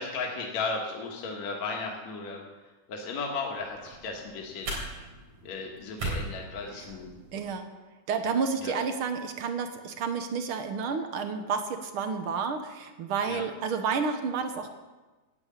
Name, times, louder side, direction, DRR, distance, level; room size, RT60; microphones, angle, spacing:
voice 1, 0.0-2.4 2.9-5.0 5.4-7.2 8.6-8.7 13.3-13.5, left 4 dB, 70° left, 0 dB, 2.7 m, -35 dB
sound 1, 3.5-7.5, right 2 dB, 85° right, 5.3 m, -39 dB
voice 2, 7.3-7.7 8.1-14.7, right 5 dB, 65° right, 8 dB, 1.4 m, -30 dB
12.5 x 8.2 x 8.9 m, 1.2 s
omnidirectional pair, 3.3 m